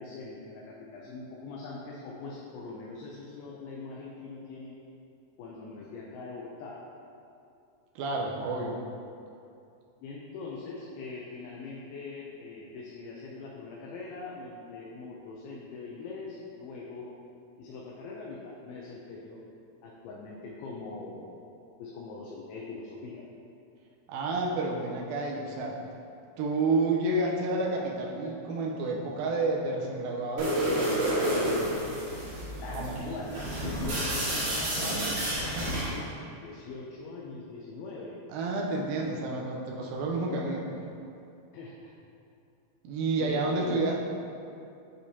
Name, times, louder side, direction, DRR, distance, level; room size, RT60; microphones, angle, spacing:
voice 1, 0.0-4.8 5.4-6.8 10.0-17.2 17.6-19.5 19.8-21.4 21.8-23.2 32.6-38.2 41.5-41.9 43.2-43.8, left 3 dB, 80° left, -4 dB, 2.4 m, -42 dB
voice 2, 8.0-8.8 24.1-25.8 26.4-31.7 32.7-33.0 38.3-40.8 42.8-44.0, right 2 dB, 75° right, -2 dB, 2.3 m, -30 dB
sound 1, 30.4-36.0, right 1 dB, 55° right, 1.9 m, -30 dB
9.1 x 4.9 x 2.8 m, 2.6 s
omnidirectional pair, 4.6 m